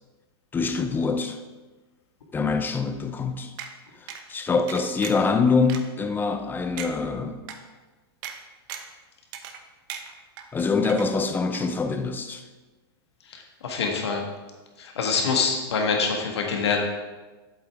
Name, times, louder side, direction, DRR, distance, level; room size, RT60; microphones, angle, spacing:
voice 1, 0.5-1.4 2.3-3.5 4.0-7.4 10.5-12.4, left 4 dB, 15° left, 8 dB, 0.7 m, -25 dB
sound 1, 3.6-3.7 4.1-4.2 4.7-5.3 5.7-5.8 6.3-6.4 6.8-6.9 7.5-7.6 8.2-8.4 8.7-9.0 9.3-9.6 9.9-10.5 10.8-11.3 11.5-11.6, right 9 dB, 55° right, 1.0 m, -37 dB
voice 2, 13.3-14.2 14.8-16.8, left 5 dB, 85° left, 1 dB, 1.8 m, -25 dB
8.1 x 7.9 x 3.7 m, 1.2 s
hypercardioid pair, 125°, 14 cm